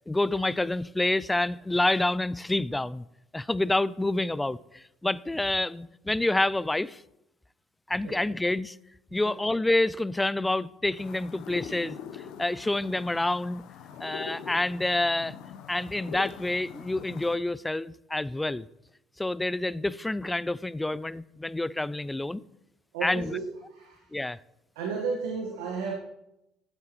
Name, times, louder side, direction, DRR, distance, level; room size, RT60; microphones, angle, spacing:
voice 1, 0.1-3.0 3.3-7.0 7.9-8.8 9.1-13.6 14.0-15.3 15.7-18.7 19.2-22.4 23.0-23.4 24.1-24.4, left 2 dB, 10° left, 0.3 m, -28 dB
sound 1, 11.0-17.4, left 8 dB, 70° left, 0.8 m, -43 dB
voice 2, 22.9-23.4 23.7-24.0 24.7-25.9, right 5 dB, 85° right, 1.4 m, -33 dB
12.0 x 7.8 x 3.0 m
supercardioid pair, 80°, 0 cm